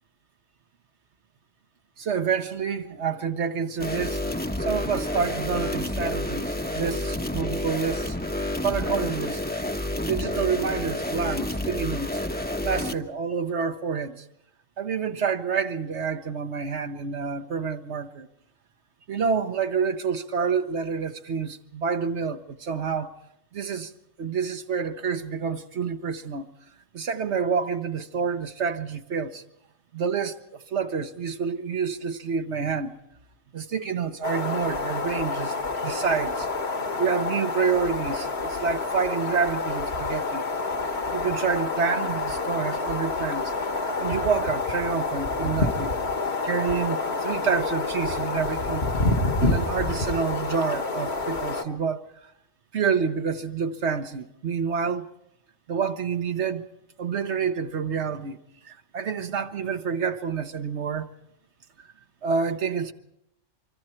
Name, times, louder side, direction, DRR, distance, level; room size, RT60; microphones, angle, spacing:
voice 1, 2.0-4.2 4.6-8.2 8.6-9.4 10.0-12.2 12.6-14.2 14.8-18.3 19.1-23.1 23.5-23.9 24.2-26.5 26.9-29.4 29.9-33.0 33.5-35.6 35.8-36.5 37.0-40.4 41.1-43.5 44.0-46.0 46.4-48.9 49.4-52.0 52.7-55.1 55.7-56.7 57.0-58.4 58.6-61.1 61.8-61.9 62.2-62.9, right 6 dB, 65° right, 1.3 m, -28 dB
sound 1, 3.8-13.0, left 1 dB, 10° left, 0.8 m, -29 dB
sound 2, 34.2-51.6, left 3 dB, 55° left, 1.7 m, -28 dB
25.0 x 24.5 x 4.4 m
omnidirectional pair, 1.3 m